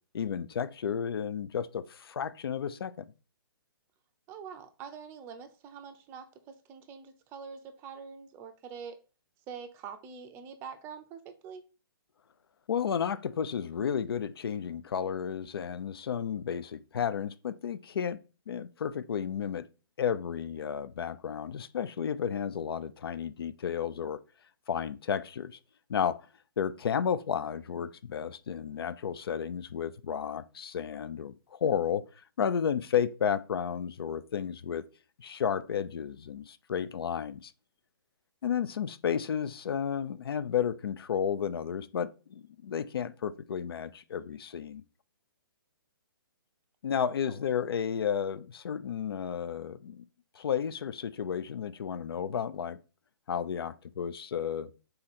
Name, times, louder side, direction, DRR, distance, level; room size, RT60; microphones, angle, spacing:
voice 1, 0.1-3.1 12.7-18.2 18.5-19.6 20.0-24.2 24.7-25.6 25.9-26.2 26.6-32.0 32.4-34.8 35.2-37.5 38.4-44.8 46.8-50.0 50.4-52.8 53.3-54.7, left 8 dB, 75° left, 0.4 m, -32 dB
voice 2, 4.3-9.0 9.5-11.6 47.2-47.5, right 6 dB, 20° right, 0.4 m, -45 dB
3.8 x 2.8 x 4.0 m
hypercardioid pair, 140°, 12 cm